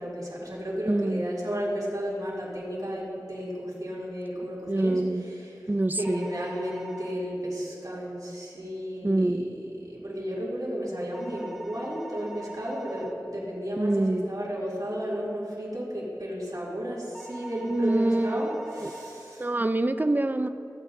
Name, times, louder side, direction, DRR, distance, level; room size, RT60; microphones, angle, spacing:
voice 1, 0.0-5.7 5.9-19.5, equal, 60° right, -7 dB, 2.5 m, -33 dB
voice 2, 0.9-1.2 4.7-5.3 5.7-6.3 9.0-9.5 13.8-14.3 17.6-18.6 18.8-18.9 19.4-20.5, right 2 dB, 25° right, 9 dB, 0.4 m, -25 dB
sound 1, 6.0-7.1 11.1-13.1 17.1-19.1, right 2 dB, 5° left, 1.0 m, -43 dB
15.5 x 8.4 x 2.7 m, 2.7 s
wide cardioid pair, 45°, 7 cm